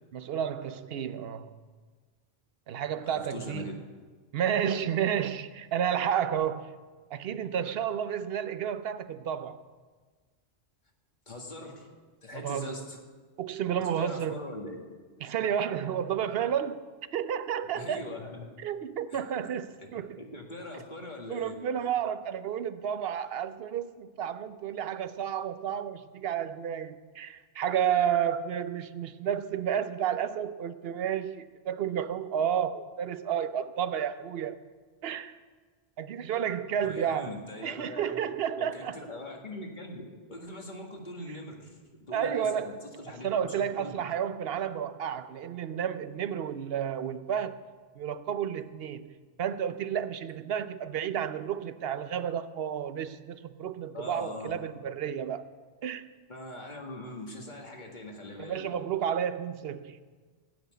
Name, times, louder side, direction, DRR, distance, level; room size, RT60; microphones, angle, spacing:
voice 1, 0.1-1.5 2.7-3.7 4.3-6.7 7.1-9.6 12.3-12.8 13.4-14.5 15.2-16.8 17.1-18.1 18.6-20.2 21.3-34.6 35.0-35.4 36.0-39.0 42.1-42.9 43.2-47.6 48.0-49.1 49.4-55.5 55.8-56.1 58.4-60.0, right 9 dB, 65° right, 0.8 m, -31 dB
voice 2, 3.0-3.7 11.3-11.9 12.2-13.0 14.0-14.8 17.7-18.5 19.1-19.2 20.2-21.6 36.8-38.2 38.6-43.9 53.9-54.5 56.3-58.8, left 2 dB, 40° left, 2.2 m, -41 dB
16.5 x 6.2 x 9.2 m
omnidirectional pair, 1.2 m